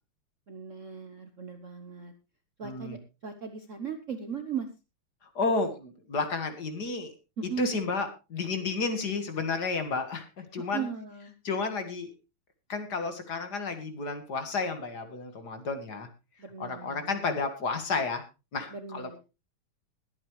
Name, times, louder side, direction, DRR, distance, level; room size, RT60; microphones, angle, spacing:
voice 1, 0.5-2.1 2.6-4.7 7.4-7.8 10.6-11.4 16.4-17.2 18.7-19.2, right 7 dB, 50° right, 7 dB, 1.0 m, -38 dB
voice 2, 2.6-3.0 5.2-7.1 7.6-10.9 11.4-12.1 12.7-16.1 16.6-18.2 18.5-19.2, left 4 dB, 50° left, 8 dB, 2.2 m, -32 dB
21.0 x 8.8 x 3.2 m, 0.28 s
omnidirectional pair, 2.4 m